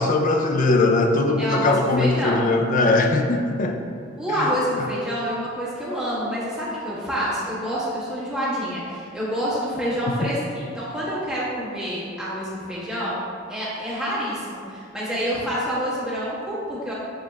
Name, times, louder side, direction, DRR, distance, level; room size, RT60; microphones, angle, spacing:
voice 1, 0.0-3.8 4.3-4.5 10.2-10.3, left 2 dB, 40° left, 4 dB, 0.3 m, -20 dB
voice 2, 1.4-2.4 4.2-13.2 13.5-16.9, equal, 5° right, -10 dB, 1.3 m, -27 dB
6.7 x 2.3 x 3.2 m, 2.4 s
head